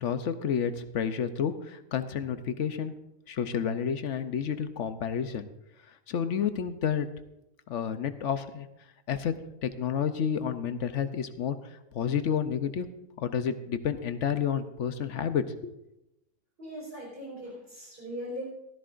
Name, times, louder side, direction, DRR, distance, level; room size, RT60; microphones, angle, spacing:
voice 1, 0.0-2.9 3.3-5.5 6.1-7.1 7.7-8.7 9.1-9.3 9.6-11.6 11.9-12.9 13.2-15.7, left 8 dB, 65° left, 10 dB, 1.0 m, -30 dB
voice 2, 16.6-18.4, equal, 45° right, -4 dB, 4.4 m, -39 dB
16.0 x 13.5 x 2.5 m, 0.88 s
omnidirectional pair, 1.4 m